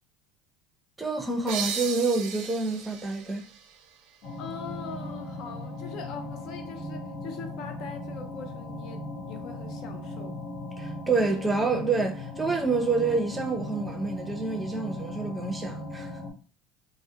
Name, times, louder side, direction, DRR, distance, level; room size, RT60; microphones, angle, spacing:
voice 1, 1.0-3.5 10.8-16.1, right 3 dB, 10° right, 0.5 m, -27 dB
sound 1, 1.5-4.9, right 7 dB, 65° right, 0.4 m, -37 dB
sound 2, 4.2-16.3, left 1 dB, 75° left, 0.9 m, -38 dB
voice 2, 4.4-10.4, left 5 dB, 55° left, 0.4 m, -41 dB
2.3 x 2.0 x 2.7 m
supercardioid pair, 125°, 0 cm